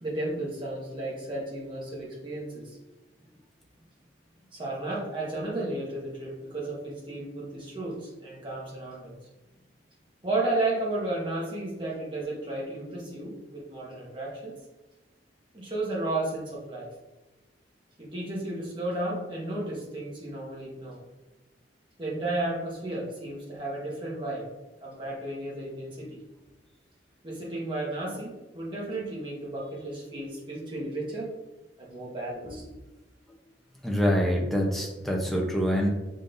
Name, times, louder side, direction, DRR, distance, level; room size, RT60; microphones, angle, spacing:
voice 1, 0.0-2.8 4.5-9.1 10.2-14.6 15.5-16.9 18.0-21.0 22.0-24.5 24.8-26.2 27.2-31.3 31.8-32.6, right 2 dB, 25° right, -5 dB, 1.2 m, -33 dB
voice 2, 33.8-35.9, equal, ahead, -2 dB, 0.7 m, -25 dB
5.2 x 3.9 x 2.6 m, 1.1 s
head